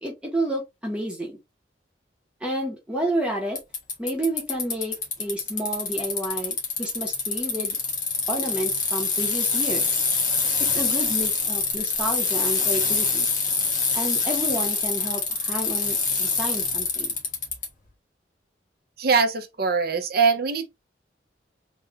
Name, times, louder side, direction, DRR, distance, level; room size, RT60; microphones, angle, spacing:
voice 1, 0.0-1.4 2.4-3.6 4.0-7.8 8.3-10.0 10.7-13.3 13.9-17.1, right 1 dB, 5° right, 1.2 m, -30 dB
Bicycle, 3.6-17.7, left 4 dB, 45° left, 1.3 m, -25 dB
voice 2, 19.0-20.7, right 5 dB, 60° right, 0.8 m, -22 dB
3.8 x 2.6 x 3.3 m
head